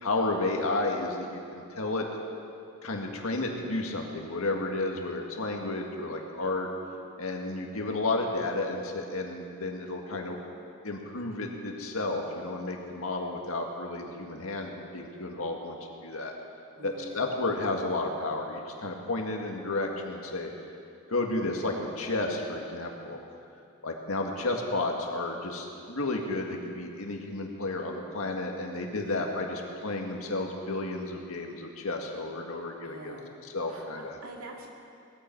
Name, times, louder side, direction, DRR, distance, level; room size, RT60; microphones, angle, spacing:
voice 1, 0.0-2.1 2.8-6.7 7.2-10.4 10.8-15.8 16.0-16.3 16.8-20.5 21.1-23.2 23.8-33.1 33.5-34.2, left 2 dB, 70° left, 1 dB, 2.0 m, -32 dB
voice 2, 16.8-17.3 29.0-29.3 32.8-33.3 33.7-34.7, right 2 dB, 75° right, 0 dB, 2.4 m, -45 dB
19.5 x 14.5 x 4.6 m, 2.5 s
head